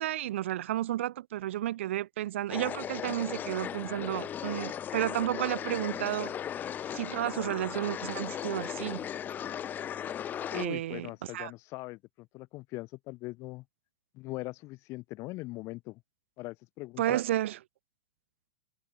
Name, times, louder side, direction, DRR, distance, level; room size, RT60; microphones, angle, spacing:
voice 1, 0.0-6.4 6.9-9.1 10.5-11.1 11.3-11.5 17.0-17.6, right 13 dB, 60° right, 0.4 m, -32 dB
sound 1, 2.5-10.7, left 9 dB, 25° left, 1.1 m, -37 dB
voice 2, 10.5-13.6 14.1-16.0 16.4-17.2, left 21 dB, 40° left, 1.5 m, -41 dB
figure-of-eight pair, 100°, 8 cm